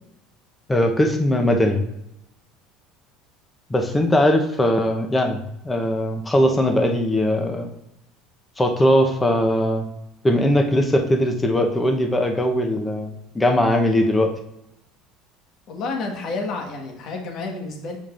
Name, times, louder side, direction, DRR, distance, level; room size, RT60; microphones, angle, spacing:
voice 1, 0.7-1.8 3.7-7.7 8.6-9.8 10.2-14.3, left 1 dB, 15° left, 4 dB, 1.0 m, -20 dB
voice 2, 15.7-18.0, left 3 dB, 55° left, 2 dB, 1.5 m, -30 dB
7.2 x 5.1 x 2.6 m, 0.83 s
supercardioid pair, 105°, 0 cm